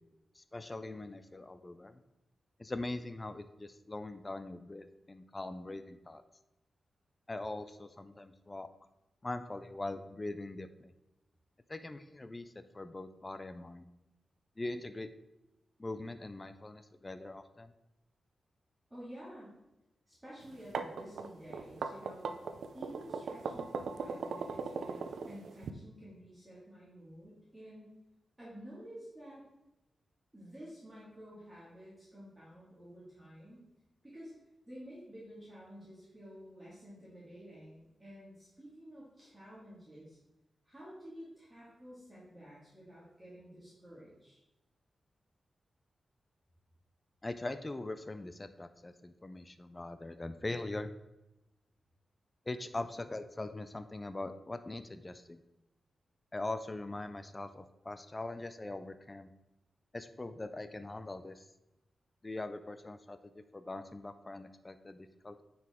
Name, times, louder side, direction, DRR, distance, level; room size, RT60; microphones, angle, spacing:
voice 1, 0.4-2.0 2.6-6.2 7.3-8.7 9.2-10.9 11.7-13.9 14.6-15.1 15.8-17.7 47.2-50.9 52.5-55.4 56.3-59.3 59.9-61.5 62.2-65.4, left 2 dB, 20° left, 10 dB, 0.4 m, -42 dB
voice 2, 18.9-19.6 20.1-22.3 22.7-27.9 28.4-29.4 30.3-33.7 34.0-34.3 34.7-40.2 40.6-44.4, equal, 10° right, -9 dB, 2.0 m, -51 dB
sound 1, 20.5-25.7, right 5 dB, 90° right, 0.5 m, -38 dB
9.4 x 4.8 x 3.6 m, 0.96 s
wide cardioid pair, 145°, 0 cm